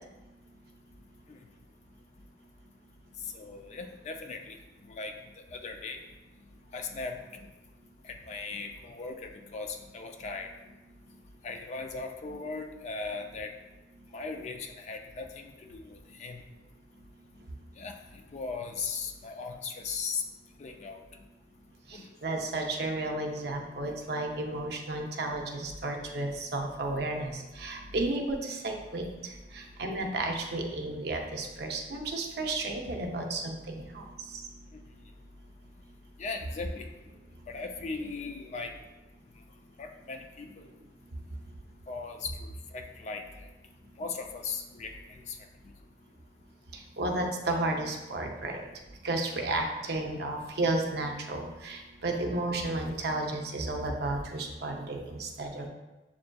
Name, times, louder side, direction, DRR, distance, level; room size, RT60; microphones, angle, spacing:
voice 1, 3.3-4.6 4.9-5.1 5.5-6.0 6.7-7.2 8.3-10.5 11.4-13.5 14.1-16.4 17.8-17.9 18.3-20.2 20.6-21.0 21.9-22.1 36.2-36.9 37.5-38.7 39.8-40.5 41.9-42.3 42.7-43.2 44.0-44.9 45.3-45.4, left 4 dB, 40° left, 4 dB, 0.3 m, -38 dB
voice 2, 21.9-29.1 29.5-34.0 47.0-48.6 49.0-55.7, right 2 dB, 60° right, 3 dB, 0.5 m, -32 dB
7.2 x 2.5 x 2.2 m, 1.1 s
head